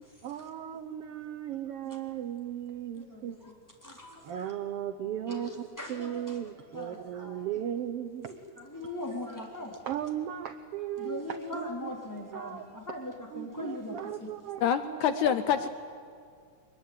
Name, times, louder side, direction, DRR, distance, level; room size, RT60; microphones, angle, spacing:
voice 1, 0.2-3.4 4.2-8.3 9.8-11.9 12.3-12.7 13.3-15.7, right 10 dB, 80° right, 10 dB, 1.3 m, -37 dB
voice 2, 3.1-3.5 3.8-4.4 5.3-6.4 6.7-7.4 8.2-9.8 11.0-14.3, left 1 dB, 5° left, -1 dB, 3.3 m, -40 dB
voice 3, 14.6-15.7, left 9 dB, 70° left, 10 dB, 2.0 m, -26 dB
23.0 x 21.5 x 9.6 m, 2.3 s
omnidirectional pair, 3.8 m